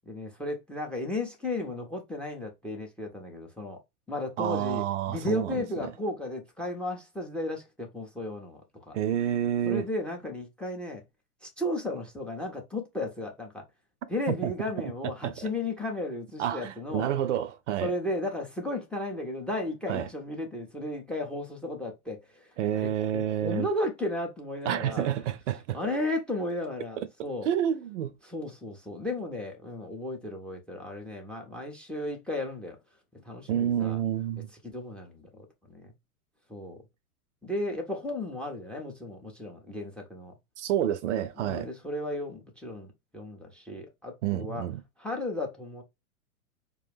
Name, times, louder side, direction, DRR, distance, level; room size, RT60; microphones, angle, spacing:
voice 1, 0.1-3.8 4.1-9.0 9.6-11.0 11.4-13.6 14.1-17.1 17.8-25.1 25.7-27.5 28.2-32.8 33.1-34.0 34.6-35.9 36.5-36.8 37.4-40.3 41.4-44.6 45.0-45.8, left 1 dB, ahead, 0.5 m, -34 dB
voice 2, 4.4-5.6 8.9-9.9 14.4-14.5 14.8-14.9 15.2-15.3 16.4-17.9 19.9-20.1 22.6-23.7 24.7-25.8 27.4-28.1 33.5-34.5 40.6-41.7 44.2-44.8, right 10 dB, 50° right, 0.6 m, -29 dB
4.9 x 2.3 x 3.3 m
hypercardioid pair, 115°, 46 cm